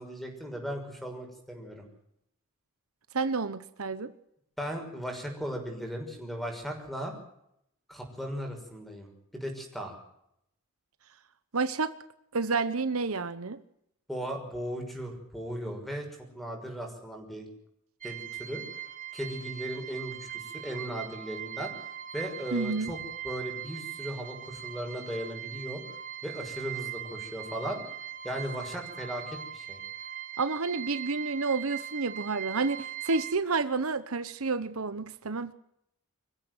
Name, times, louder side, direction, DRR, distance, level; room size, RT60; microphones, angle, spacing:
voice 1, 0.0-1.8 4.6-7.1 7.9-10.0 14.1-16.1 16.3-17.5 18.0-18.6 19.1-21.7 22.1-23.0 23.2-25.8 26.2-27.8 28.2-29.8, equal, ahead, 3 dB, 6.0 m, -37 dB
voice 2, 3.1-4.1 11.5-11.9 12.3-13.6 22.5-22.9 30.4-35.5, right 4 dB, 70° right, 13 dB, 1.0 m, -30 dB
sound 1, 18.0-33.4, right 10 dB, 40° right, 2.1 m, -40 dB
25.5 x 15.5 x 8.0 m, 0.76 s
head